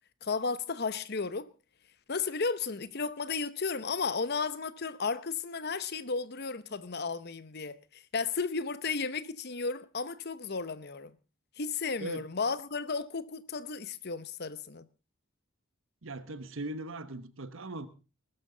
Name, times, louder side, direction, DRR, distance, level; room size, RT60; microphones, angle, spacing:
voice 1, 0.2-1.5 2.1-11.2 11.6-14.9, left 4 dB, 50° left, 0.9 m, -34 dB
voice 2, 16.0-17.9, right 2 dB, 70° right, 1.2 m, -39 dB
20.0 x 12.5 x 3.9 m
head